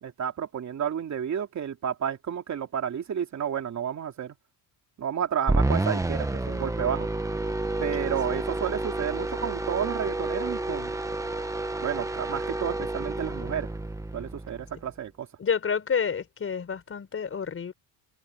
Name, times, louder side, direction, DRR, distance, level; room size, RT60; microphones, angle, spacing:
voice 1, 0.0-4.3 5.0-7.1 7.8-10.9 11.8-13.7 14.1-15.3, right 8 dB, 35° right, 2.9 m, -31 dB
sound 1, 5.5-14.9, right 2 dB, 5° right, 1.0 m, -30 dB
voice 2, 15.4-17.7, left 6 dB, 25° left, 4.4 m, -29 dB
cardioid pair, 150°, 48 cm